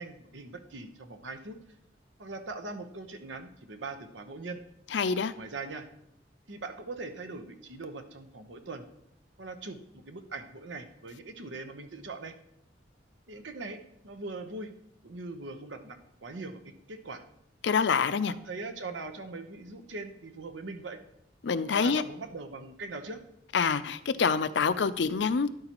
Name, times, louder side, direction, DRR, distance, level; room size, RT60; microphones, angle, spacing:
voice 1, 0.0-1.6 2.2-4.6 5.4-5.9 6.5-8.8 9.4-9.8 10.1-12.3 13.3-14.7 15.0-16.6 16.9-17.2 18.3-21.0 21.8-23.2, right 3 dB, 90° right, 8 dB, 0.9 m, -41 dB
voice 2, 4.9-5.3 17.6-18.3 21.4-22.0 23.5-25.5, left 5 dB, 70° left, 14 dB, 0.5 m, -26 dB
12.5 x 10.5 x 3.0 m, 0.79 s
head